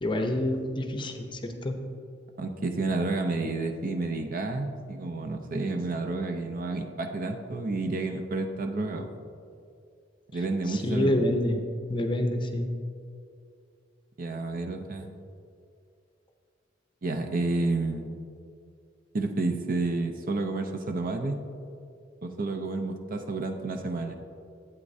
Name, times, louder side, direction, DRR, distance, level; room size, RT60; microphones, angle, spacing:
voice 1, 0.0-1.8 10.7-11.6 11.9-12.7, left 1 dB, 25° left, 4 dB, 0.6 m, -27 dB
voice 2, 2.4-9.1 10.3-11.2 14.2-15.1 17.0-18.1 19.1-21.4 22.2-24.2, right 2 dB, 45° right, 5 dB, 0.6 m, -30 dB
11.5 x 8.3 x 2.7 m, 2.4 s
head